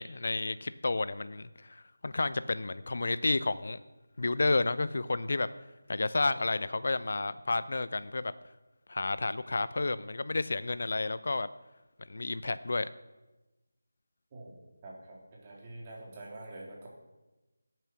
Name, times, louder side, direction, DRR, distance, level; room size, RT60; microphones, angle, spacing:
voice 1, 0.0-3.8 4.2-5.5 5.9-8.3 8.9-11.5 12.1-12.9, left 3 dB, 60° left, 15 dB, 0.7 m, -31 dB
voice 2, 14.3-16.9, right 2 dB, 25° right, -3 dB, 3.4 m, -46 dB
16.0 x 9.1 x 6.1 m, 1.1 s
figure-of-eight pair, 160°, 0 cm